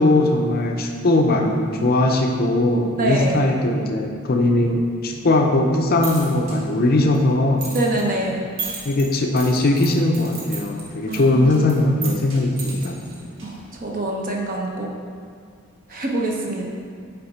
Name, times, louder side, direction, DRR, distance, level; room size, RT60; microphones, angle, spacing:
voice 1, 0.0-7.7 8.9-13.0, left 2 dB, 45° left, 2 dB, 0.5 m, -19 dB
voice 2, 3.0-3.4 7.7-8.4 11.1-11.6 13.4-14.9 15.9-16.7, right 1 dB, 40° right, -1 dB, 0.9 m, -25 dB
sound 1, 5.7-13.8, right 4 dB, 70° right, 1.6 m, -37 dB
7.1 x 3.6 x 5.0 m, 2.1 s
head